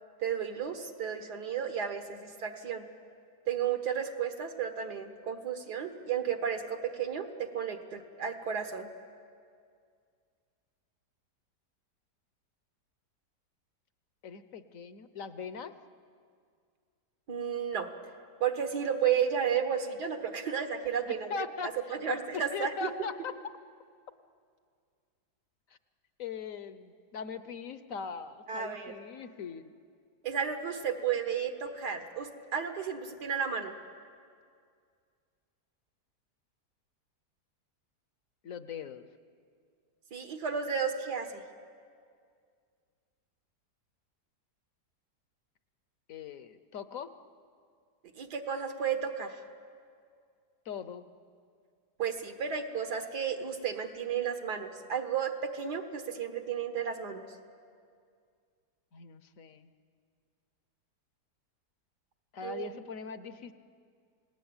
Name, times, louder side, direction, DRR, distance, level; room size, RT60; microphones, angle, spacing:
voice 1, 0.2-2.8 3.5-8.9 17.3-17.9 18.4-22.7 28.5-28.9 30.2-33.7 40.1-41.4 48.2-49.4 52.0-57.2 62.4-62.7, right 7 dB, 70° right, 6 dB, 2.2 m, -33 dB
voice 2, 14.2-15.7 21.3-21.7 22.1-23.3 26.2-29.7 38.4-39.0 46.1-47.1 50.7-51.0 58.9-59.7 62.3-63.5, left 6 dB, 60° left, 12 dB, 1.1 m, -40 dB
29.0 x 18.5 x 8.9 m, 2.2 s
omnidirectional pair, 1.8 m